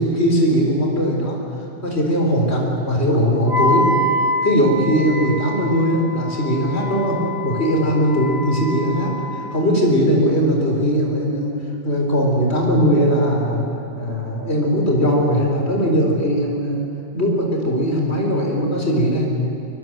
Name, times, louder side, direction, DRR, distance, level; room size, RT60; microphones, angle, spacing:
voice 1, 0.0-1.4 1.8-3.9 4.4-11.5 11.8-13.6 14.0-16.9 17.1-19.3, equal, 65° left, 0 dB, 4.4 m, -19 dB
Wind instrument woodwind instrument, 3.5-9.6, left 1 dB, 60° right, 2.1 m, -26 dB
23.5 x 23.5 x 7.9 m, 2.7 s
omnidirectional pair, 1.2 m